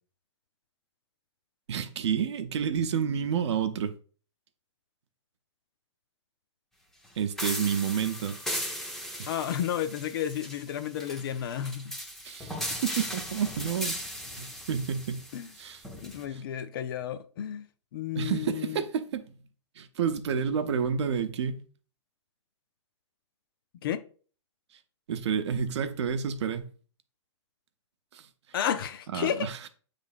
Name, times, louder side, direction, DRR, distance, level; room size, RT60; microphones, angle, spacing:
voice 1, 1.7-3.9 7.2-8.4 9.2-9.3 12.2-14.0 14.4-15.2 15.6-15.8 16.3-16.4 18.2-19.3 19.8-21.6 25.1-26.7 28.1-28.3 29.1-29.6, right 7 dB, 65° right, 0.7 m, -30 dB
sound 1, 7.4-16.2, equal, ahead, 0.6 m, -37 dB
voice 2, 9.3-11.9 15.3-15.5 16.0-17.6 17.9-18.9 23.8-24.0 28.5-29.5, left 10 dB, 50° left, 0.5 m, -32 dB
7.3 x 3.3 x 4.0 m
hypercardioid pair, 160°, 16 cm